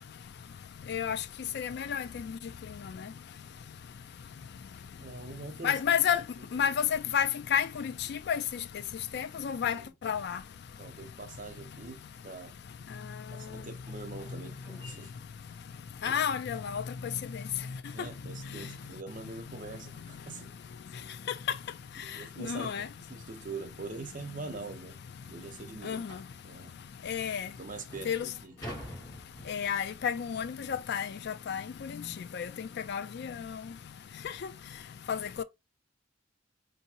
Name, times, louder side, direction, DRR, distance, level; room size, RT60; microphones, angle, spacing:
voice 1, 0.0-23.3 25.1-27.7 28.0-35.4, left 8 dB, 60° left, 0.3 m, -35 dB
voice 2, 5.0-5.8 9.6-9.9 10.8-12.5 13.3-15.1 17.9-20.5 22.0-24.9 25.3-26.0 26.4-27.0 27.5-28.5, right 3 dB, 45° right, 0.8 m, -44 dB
sound 1, 13.4-16.5 19.3-19.4 19.9-20.1 20.4-20.5 21.0-21.1 22.2-22.3 22.7-22.9 23.5-23.6 24.0-24.1 24.6-24.7 26.1-26.4 27.1-27.2 27.7-30.0, equal, 20° left, 1.7 m, -48 dB
4.5 x 2.7 x 2.8 m
head